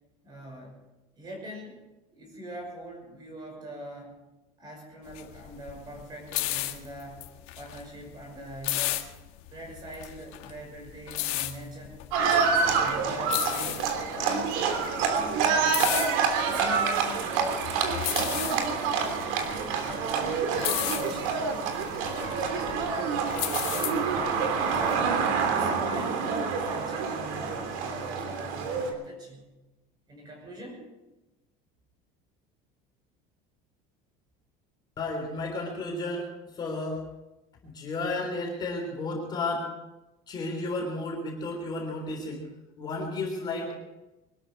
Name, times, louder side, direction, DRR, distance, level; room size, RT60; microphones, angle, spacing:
voice 1, 0.2-0.8 1.2-1.8 2.1-4.2 4.6-7.3 7.6-9.0 9.5-12.1 12.7-16.0 16.5-21.5 22.1-25.1 25.5-29.5 30.1-30.8, equal, 25° right, 1 dB, 5.8 m, -42 dB
sound 1, 5.1-24.9, left 16 dB, 75° left, 1.8 m, -35 dB
Livestock farm animals working animals, 12.1-28.9, right 5 dB, 85° right, 3.2 m, -27 dB
voice 2, 35.0-37.0 37.6-39.7 40.3-42.4 42.8-43.7, left 2 dB, 25° left, 0 dB, 3.6 m, -32 dB
23.5 x 13.0 x 4.7 m, 1.0 s
cardioid pair, 180°, 17 cm